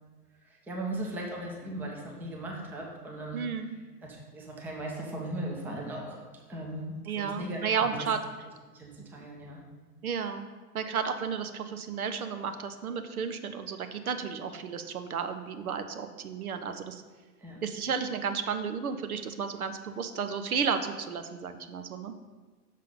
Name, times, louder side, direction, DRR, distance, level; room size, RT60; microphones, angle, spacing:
voice 1, 0.4-3.4 4.0-6.2 6.5-8.1 8.7-9.6 17.4-17.6, right 1 dB, 5° right, -1 dB, 0.6 m, -38 dB
voice 2, 3.3-3.8 7.1-8.2 9.2-9.3 10.0-10.5 10.7-17.0 17.6-22.1, right 6 dB, 65° right, 8 dB, 0.7 m, -33 dB
6.5 x 5.6 x 5.2 m, 1.3 s
figure-of-eight pair, 105°, 46 cm